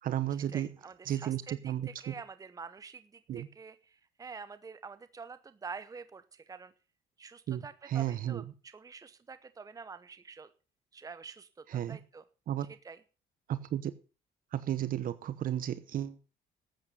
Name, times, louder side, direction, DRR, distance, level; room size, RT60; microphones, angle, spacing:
voice 1, 0.0-0.7 1.1-2.1 3.3-3.5 7.5-8.4 11.7-12.0 12.5-12.7 13.5-13.9 14.5-16.2, right 11 dB, 55° right, 14 dB, 0.9 m, -33 dB
voice 2, 0.5-6.7 7.2-10.5 10.9-12.2 12.8-13.0, right 5 dB, 20° right, 12 dB, 0.9 m, -47 dB
13.0 x 8.7 x 6.8 m, 0.35 s
cardioid pair, 110°, 17 cm